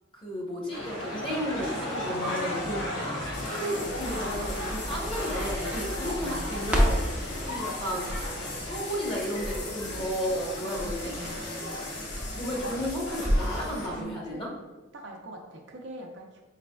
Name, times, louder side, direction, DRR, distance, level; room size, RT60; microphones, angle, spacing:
voice 1, 0.1-2.8 3.2-7.0 7.5-8.3 8.6-11.1 11.6-11.7 12.3-14.5, equal, 25° left, -4 dB, 1.0 m, -33 dB
sound 1, 0.7-14.0, left 1 dB, 85° left, 1.2 m, -36 dB
voice 2, 2.6-3.0 6.1-7.2 10.8-11.8 13.8-14.6 14.9-16.4, right 2 dB, 60° right, 2 dB, 0.6 m, -44 dB
sound 2, 3.3-13.9, left 3 dB, 60° left, 0.7 m, -41 dB
Crackle, 3.8-13.6 13.9-14.0, equal, 5° right, 0.5 m, -33 dB
5.0 x 3.3 x 2.3 m, 1.2 s
head